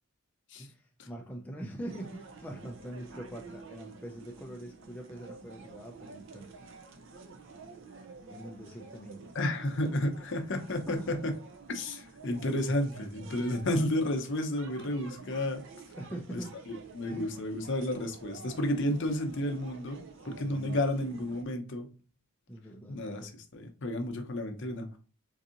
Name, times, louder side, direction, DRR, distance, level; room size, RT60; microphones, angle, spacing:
voice 1, 0.6-6.5 8.3-9.2 10.9-11.1 13.4-13.8 15.9-16.5 17.1-17.3 20.2-20.8 22.5-23.3, right 1 dB, 5° left, 0.4 m, -43 dB
sound 1, 1.9-21.4, right 4 dB, 55° right, 0.5 m, -50 dB
voice 2, 9.3-11.3 11.7-15.6 16.3-16.4 16.7-20.0 20.2-21.9 22.9-25.0, left 1 dB, 55° left, 0.7 m, -32 dB
4.0 x 2.6 x 2.5 m
head